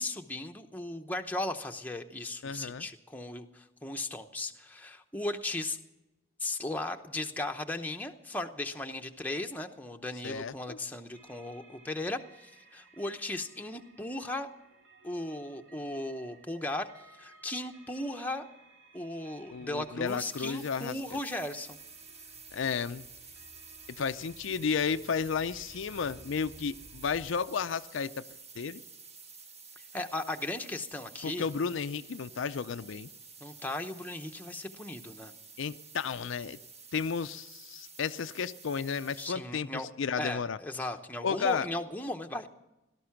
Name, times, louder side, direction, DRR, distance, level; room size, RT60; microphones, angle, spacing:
voice 1, 0.0-5.8 6.4-14.5 15.0-18.5 18.9-21.8 29.8-31.5 33.4-35.3 39.2-39.9 40.2-42.5, left 2 dB, 10° left, 4 dB, 0.8 m, -37 dB
voice 2, 2.4-2.9 10.2-10.8 19.5-21.2 22.5-23.0 24.0-28.2 28.6-28.8 31.2-33.1 35.6-36.6 36.9-40.6 41.2-41.7, left 6 dB, 70° left, 11 dB, 0.5 m, -33 dB
sound 1, 11.1-27.3, right 2 dB, 65° right, 2.9 m, -58 dB
sound 2, 20.0-39.3, right 4 dB, 30° right, 1.4 m, -51 dB
17.5 x 13.0 x 5.8 m, 0.96 s
head